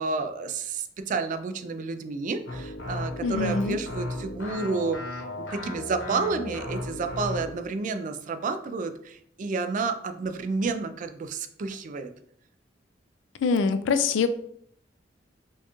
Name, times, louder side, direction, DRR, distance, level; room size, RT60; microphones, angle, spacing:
voice 1, 0.0-5.0 5.4-12.1, right 4 dB, 45° right, 8 dB, 0.3 m, -30 dB
sound 1, 2.5-7.5, left 2 dB, 70° left, 1.0 m, -35 dB
voice 2, 3.2-3.8 13.4-14.3, left 5 dB, 85° left, 11 dB, 0.3 m, -24 dB
4.4 x 2.3 x 3.0 m, 0.67 s
head